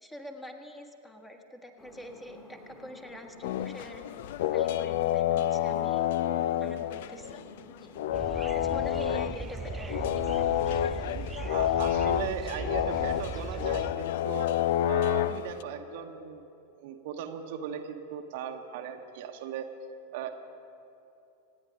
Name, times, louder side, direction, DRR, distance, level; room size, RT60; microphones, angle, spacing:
voice 1, 0.0-4.0 4.5-6.0 6.6-7.4 7.8-7.9 8.3-10.4, left 1 dB, 10° left, 4 dB, 1.4 m, -45 dB
sound 1, 1.8-8.3, left 1 dB, 25° left, 2.7 m, -51 dB
sound 2, 3.4-7.6 8.0-15.6, left 12 dB, 55° left, 0.4 m, -29 dB
sound 3, 8.1-13.9, right 5 dB, 20° right, 0.4 m, -38 dB
voice 2, 11.5-14.5 14.9-16.5 16.8-19.7 20.1-20.3, right 8 dB, 50° right, 5 dB, 1.0 m, -38 dB
27.0 x 9.5 x 5.1 m, 2.8 s
figure-of-eight pair, 90°, 0 cm